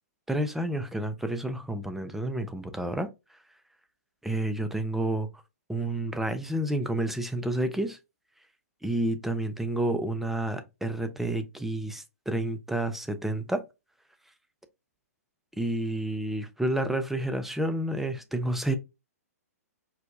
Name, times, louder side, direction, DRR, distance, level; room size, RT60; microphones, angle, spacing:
voice 1, 0.3-3.1 4.2-5.3 5.7-8.0 8.8-13.6 15.6-18.8, right 1 dB, 5° right, 0.4 m, -30 dB
4.6 x 2.2 x 2.5 m
hypercardioid pair, 120°, 9 cm